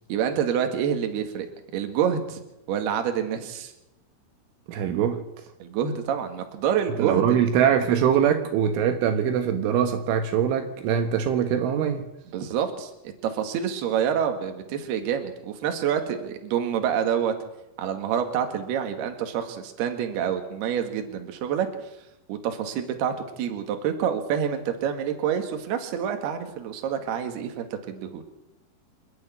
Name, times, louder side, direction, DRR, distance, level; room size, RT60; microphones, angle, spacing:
voice 1, 0.1-1.5 1.7-2.4 2.7-3.7 5.6-7.4 12.3-12.9 13.2-17.3 17.8-21.7 22.3-28.2, right 8 dB, 60° right, 6 dB, 3.6 m, -27 dB
voice 2, 4.7-5.2 7.0-12.0, right 8 dB, 75° right, 6 dB, 3.7 m, -23 dB
28.0 x 9.4 x 9.9 m, 0.91 s
omnidirectional pair, 5.7 m